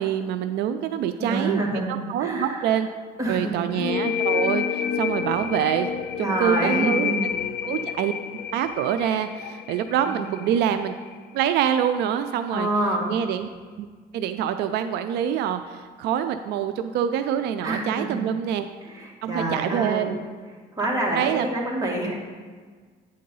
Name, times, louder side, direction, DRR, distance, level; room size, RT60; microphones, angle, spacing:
voice 1, 0.0-2.9 3.3-5.9 6.2-7.1 7.6-8.1 8.5-10.9 11.3-12.7 13.1-13.5 13.8-13.9 14.1-18.7 19.2-20.2 21.1-21.5, right 9 dB, 80° right, 9 dB, 0.4 m, -25 dB
voice 2, 1.2-1.9 2.2-2.7 3.2-3.8 6.2-7.3 10.1-10.4 12.5-13.1 17.6-18.3 18.8-20.1 20.8-22.2, right 1 dB, 20° right, -3 dB, 1.8 m, -27 dB
sound 1, 3.7-11.2, left 8 dB, 70° left, 0.4 m, -29 dB
9.3 x 3.8 x 5.4 m, 1.5 s
cardioid pair, 110°, 17 cm